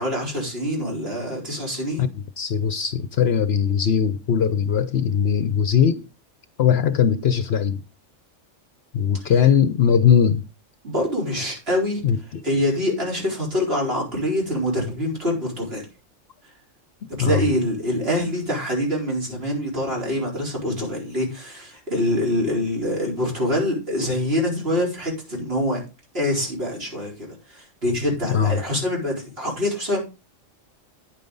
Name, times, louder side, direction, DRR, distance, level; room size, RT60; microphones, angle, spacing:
voice 1, 0.0-2.1 10.8-12.0 12.4-15.8 17.2-25.8 26.1-30.0, left 1 dB, 50° right, 4.7 m, -25 dB
voice 2, 2.0-6.0 6.6-7.8 8.9-10.4 12.0-12.4 17.2-17.4 28.3-28.6, left 8 dB, 60° left, 0.9 m, -20 dB
10.0 x 8.9 x 4.0 m
omnidirectional pair, 1.3 m